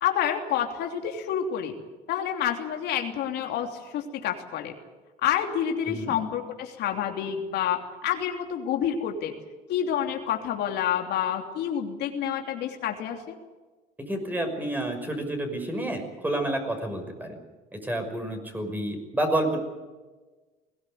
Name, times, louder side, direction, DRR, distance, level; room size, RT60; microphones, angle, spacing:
voice 1, 0.0-1.7 2.1-4.7 5.2-9.4 9.7-13.3, left 9 dB, 80° left, 4 dB, 3.1 m, -28 dB
voice 2, 14.1-17.4 17.7-19.6, right 1 dB, 10° right, 4 dB, 5.8 m, -29 dB
21.0 x 18.0 x 9.3 m, 1.2 s
cardioid pair, 110°, 17 cm